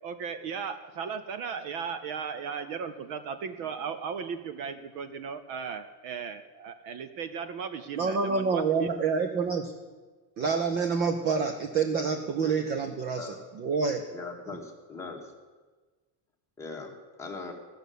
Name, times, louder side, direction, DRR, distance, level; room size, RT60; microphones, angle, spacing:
voice 1, 0.0-8.9, right 6 dB, 45° right, 10 dB, 0.7 m, -36 dB
voice 2, 8.0-9.7 10.4-14.0, right 5 dB, 25° right, 6 dB, 0.3 m, -27 dB
voice 3, 13.0-13.4 14.1-15.3 16.6-17.5, left 3 dB, 5° left, -1 dB, 1.4 m, -40 dB
14.5 x 6.7 x 9.2 m, 1.3 s
cardioid pair, 175°, 49 cm